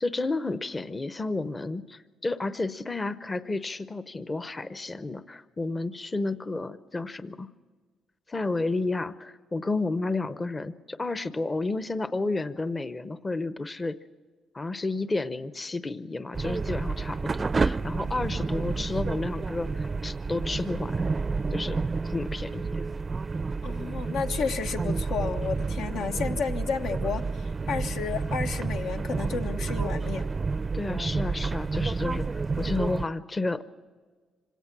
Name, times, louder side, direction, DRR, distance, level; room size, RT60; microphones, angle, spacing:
voice 1, 0.0-7.5 8.3-14.0 14.5-21.1 21.5-21.8 22.0-22.9 30.7-33.6, left 3 dB, 25° left, 13 dB, 0.7 m, -31 dB
sound 1, 16.3-33.1, right 4 dB, 30° right, 0.5 m, -30 dB
voice 2, 23.6-30.3, left 5 dB, 80° left, 5 dB, 1.1 m, -32 dB
26.0 x 17.5 x 6.0 m, 1.5 s
cardioid pair, 90°, 0 cm